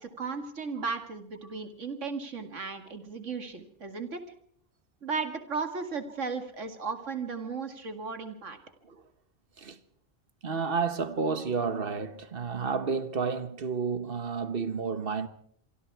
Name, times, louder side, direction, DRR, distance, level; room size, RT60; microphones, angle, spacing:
voice 1, 0.0-4.2 5.0-8.6, right 4 dB, 80° right, 2.4 m, -35 dB
voice 2, 10.4-15.3, right 5 dB, 50° right, 1.5 m, -31 dB
26.0 x 23.5 x 4.7 m
omnidirectional pair, 1.2 m